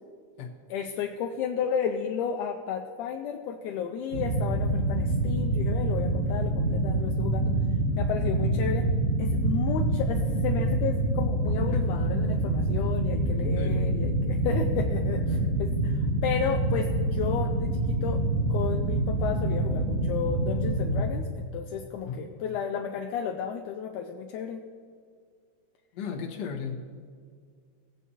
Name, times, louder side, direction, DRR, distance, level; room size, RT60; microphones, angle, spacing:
voice 1, 0.7-7.5 8.0-8.9 9.2-18.2 18.5-24.6, left 7 dB, 80° left, 3 dB, 1.9 m, -33 dB
sound 1, 4.1-21.0, right 1 dB, 60° right, 2.9 m, -26 dB
voice 2, 22.0-22.3 25.9-26.8, left 6 dB, 60° left, -1 dB, 2.0 m, -35 dB
18.0 x 8.3 x 2.8 m, 2.1 s
omnidirectional pair, 3.8 m